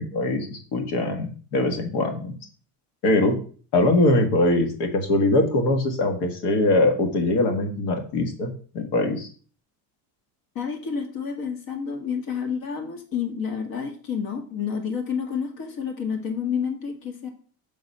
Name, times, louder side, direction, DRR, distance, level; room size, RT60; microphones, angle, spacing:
voice 1, 0.0-2.4 3.0-3.4 3.7-9.3, left 2 dB, 75° left, 5 dB, 1.8 m, -22 dB
voice 2, 10.6-17.3, left 6 dB, 55° left, 4 dB, 1.9 m, -29 dB
7.2 x 3.9 x 5.5 m, 0.43 s
cardioid pair, 130°, 41 cm